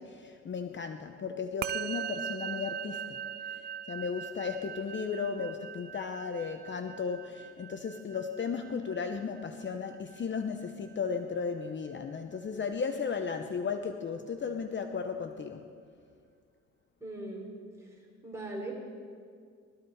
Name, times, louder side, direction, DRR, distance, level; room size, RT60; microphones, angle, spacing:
voice 1, 0.0-3.2 3.9-15.6, left 5 dB, 40° left, 7 dB, 0.9 m, -35 dB
Musical instrument, 1.6-11.2, right 8 dB, 35° right, 0.4 m, -41 dB
voice 2, 17.0-17.5 17.8-17.9 18.2-18.8, right 2 dB, 10° right, -2 dB, 4.8 m, -39 dB
20.5 x 14.0 x 4.9 m, 2.1 s
cardioid pair, 90°, 30 cm